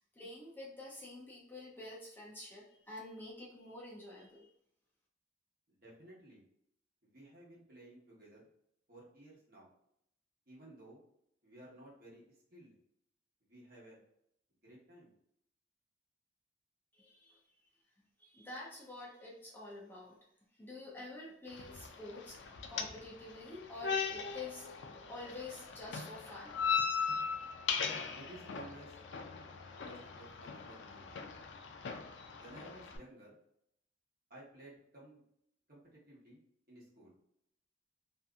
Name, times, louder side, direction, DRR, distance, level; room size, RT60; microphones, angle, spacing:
voice 1, 0.2-4.5 16.9-17.4 18.2-20.2 20.6-22.4 22.7-24.7 25.1-26.6, left 2 dB, 10° left, -4 dB, 0.5 m, -48 dB
voice 2, 5.7-6.4 7.0-8.4 8.9-9.7 10.5-11.0 11.4-12.8 13.5-14.0 14.6-15.1 28.2-29.0 29.7-31.3 32.3-33.4 34.3-35.2 35.7-36.4 36.7-37.1, right 1 dB, 50° right, -5 dB, 1.1 m, -55 dB
sound 1, 21.5-33.0, left 6 dB, 75° left, 0.3 m, -39 dB
2.7 x 2.4 x 2.3 m, 0.73 s
head